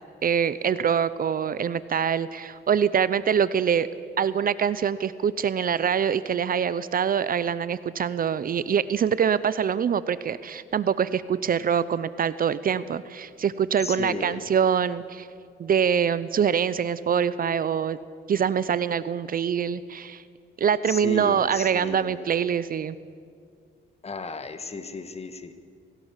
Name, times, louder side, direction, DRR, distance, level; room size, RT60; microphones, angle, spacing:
voice 1, 0.2-3.9 4.2-15.3 15.6-18.0 18.3-20.2 20.6-23.0, right 7 dB, 45° right, 16 dB, 0.7 m, -24 dB
voice 2, 13.8-14.5 20.9-22.2 24.0-25.5, left 4 dB, 30° left, 10 dB, 1.6 m, -34 dB
25.0 x 16.0 x 7.4 m, 2.2 s
cardioid pair, 90°, 20 cm